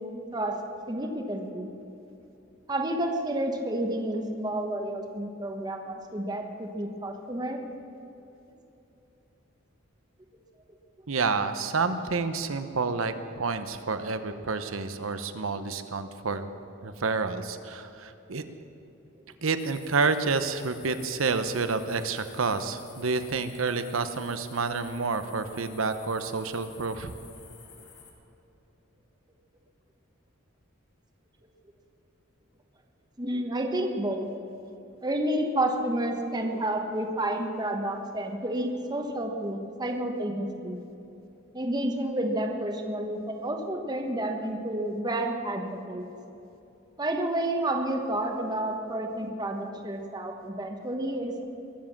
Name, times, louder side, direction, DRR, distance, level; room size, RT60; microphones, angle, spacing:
voice 1, 0.9-1.7 2.7-7.6 33.2-34.3 35.0-40.8 41.5-46.1 47.0-51.4, right 1 dB, 20° right, 3 dB, 1.1 m, -30 dB
voice 2, 11.1-16.5 16.8-18.4 19.4-27.2, right 4 dB, 80° right, 10 dB, 0.9 m, -29 dB
sound 1, 19.6-28.1, left 6 dB, 60° left, 2.3 m, -52 dB
21.5 x 7.5 x 7.2 m, 3.0 s
head